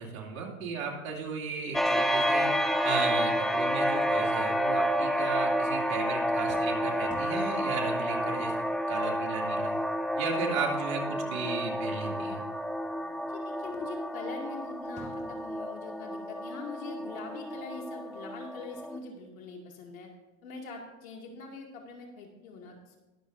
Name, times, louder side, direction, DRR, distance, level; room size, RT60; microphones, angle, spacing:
voice 1, 0.0-2.5 2.8-8.5 8.9-9.7 10.2-12.4, right 5 dB, 90° right, 0 dB, 2.6 m, -35 dB
sound 1, 1.1-15.6, right 2 dB, 15° right, 2.5 m, -50 dB
sound 2, 1.7-19.0, equal, ahead, 0.6 m, -30 dB
voice 2, 13.3-20.1 20.4-23.0, left 4 dB, 90° left, 0 dB, 2.4 m, -43 dB
21.0 x 7.1 x 2.7 m, 1.1 s
supercardioid pair, 105°, 40 cm